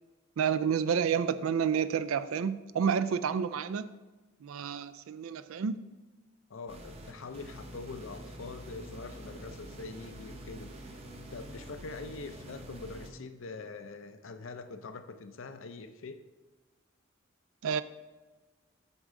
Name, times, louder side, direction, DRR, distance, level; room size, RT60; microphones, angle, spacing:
voice 1, 0.4-3.9 4.4-5.9 17.6-17.8, right 7 dB, 90° right, 14 dB, 0.4 m, -30 dB
voice 2, 6.5-10.7 11.3-16.2, left 3 dB, 75° left, 9 dB, 0.6 m, -44 dB
sound 1, 6.7-13.1, right 1 dB, 30° right, 0.7 m, -46 dB
8.0 x 6.4 x 3.7 m, 1.2 s
head